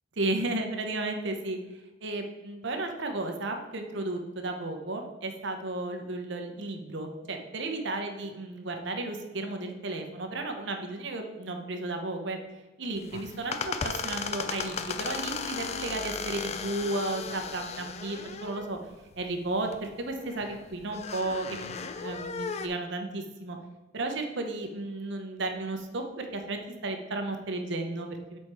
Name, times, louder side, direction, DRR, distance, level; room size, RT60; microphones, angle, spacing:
voice 1, 0.2-1.6 2.0-12.4 12.8-18.8 19.2-23.6 23.9-28.4, right 2 dB, 60° right, 4 dB, 0.8 m, -33 dB
sound 1, 13.0-22.7, left 5 dB, 30° left, 0.4 m, -36 dB
7.1 x 4.3 x 4.7 m, 1.1 s
head